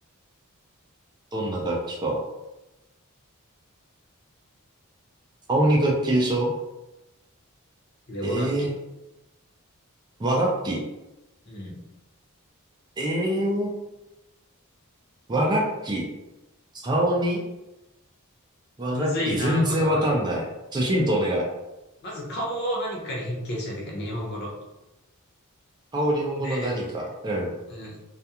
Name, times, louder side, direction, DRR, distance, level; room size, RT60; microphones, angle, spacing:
voice 1, 1.3-2.2 5.5-6.5 8.2-8.7 10.2-10.8 13.0-13.7 15.3-16.0 16.8-17.4 18.8-20.4 20.7-21.5 25.9-27.5, right 1 dB, 20° right, -1 dB, 0.4 m, -24 dB
voice 2, 8.1-8.7 11.5-11.7 18.9-20.1 22.0-24.5 26.4-26.8 27.7-28.0, equal, 50° left, -3 dB, 0.7 m, -31 dB
2.4 x 2.2 x 2.8 m, 0.99 s
head